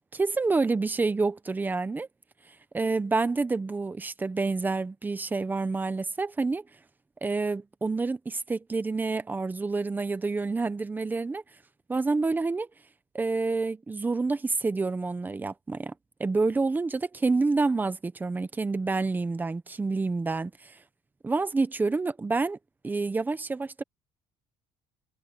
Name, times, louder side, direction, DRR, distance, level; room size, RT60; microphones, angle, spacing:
voice 1, 0.1-2.1 2.7-6.6 7.2-11.4 11.9-12.7 13.1-15.9 16.2-20.8 21.2-22.6 22.8-23.8, right 3 dB, 15° right, 1.0 m, -28 dB
cardioid pair, 140°, 13 cm